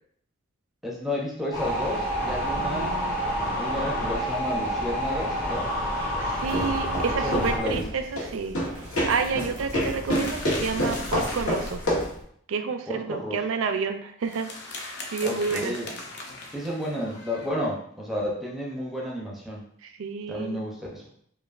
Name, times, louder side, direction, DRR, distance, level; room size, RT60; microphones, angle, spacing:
voice 1, 0.8-2.9 3.6-5.7 6.6-6.7 7.1-7.9 12.9-13.4 15.2-15.9 16.5-19.6 20.3-21.0, left 1 dB, ahead, -3 dB, 0.6 m, -31 dB
sound 1, 1.5-7.6, equal, 70° left, 1.3 m, -28 dB
voice 2, 2.6-3.2 6.0-8.6 9.1-11.8 12.5-14.5 15.1-15.8 19.8-20.6, right 5 dB, 75° right, 8 dB, 0.4 m, -30 dB
sound 2, 6.3-12.2, equal, 90° left, 1.2 m, -29 dB
sound 3, 10.1-12.1 14.2-17.5, left 2 dB, 55° left, 0.6 m, -39 dB
5.0 x 2.4 x 2.4 m, 0.65 s
head